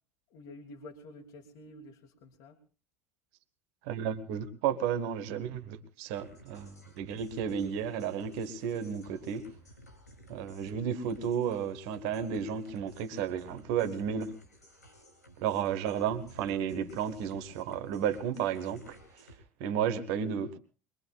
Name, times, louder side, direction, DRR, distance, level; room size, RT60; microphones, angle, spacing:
voice 1, 0.3-2.6, left 2 dB, 50° left, 1.8 m, -49 dB
voice 2, 3.8-9.5 10.3-14.3 15.4-19.0 19.6-20.6, right 8 dB, 55° right, 1.3 m, -33 dB
sound 1, 6.1-19.4, equal, 85° left, 4.0 m, -56 dB
23.0 x 22.5 x 2.4 m
figure-of-eight pair, 70°, 8 cm